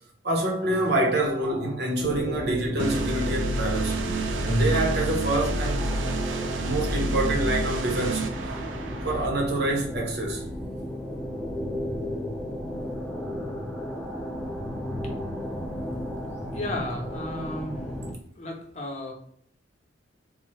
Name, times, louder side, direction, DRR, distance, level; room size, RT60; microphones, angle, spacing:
voice 1, 0.2-4.1 4.4-5.8 6.6-8.7 9.0-10.4, right 1 dB, 60° right, 0.9 m, -26 dB
sound 1, 2.0-18.1, left 1 dB, 5° left, 0.5 m, -34 dB
sound 2, 2.8-9.3, right 2 dB, 75° right, 0.4 m, -29 dB
voice 2, 16.1-17.8 18.4-19.1, left 1 dB, 35° left, 0.7 m, -35 dB
3.3 x 2.1 x 3.1 m
head